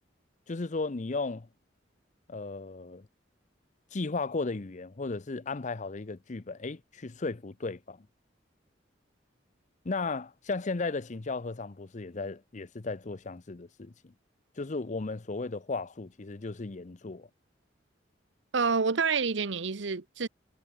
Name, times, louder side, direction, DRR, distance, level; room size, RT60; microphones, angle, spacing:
voice 1, 0.5-1.5 2.3-3.1 3.9-8.1 9.8-13.9 14.6-17.3, left 3 dB, 40° left, 0.7 m, -35 dB
voice 2, 18.5-20.3, right 5 dB, 75° right, 0.9 m, -28 dB
head